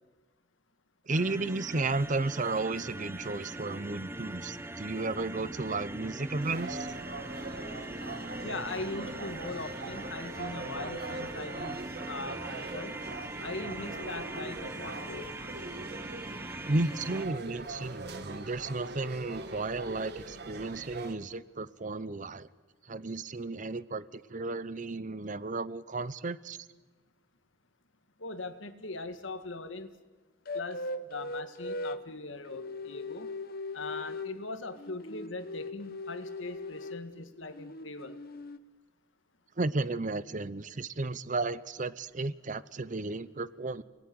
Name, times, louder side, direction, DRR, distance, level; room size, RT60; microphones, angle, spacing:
sound 1, 1.1-17.3, right 1 dB, 15° right, 0.9 m, -41 dB
voice 1, 1.1-7.0 16.6-22.5 22.9-26.6 39.6-43.8, right 3 dB, 40° right, 16 dB, 0.8 m, -33 dB
sound 2, 6.4-21.1, right 2 dB, 55° right, 1.9 m, -42 dB
voice 2, 8.4-11.8 12.1-13.0 13.4-15.4 28.2-29.9 30.5-33.3 33.7-38.2, left 3 dB, 85° left, 9 dB, 1.9 m, -40 dB
sound 3, 30.5-32.1 32.5-34.4 34.8-37.1 37.5-38.6, left 2 dB, 50° left, 1.0 m, -39 dB
28.5 x 20.0 x 9.7 m, 1.3 s
head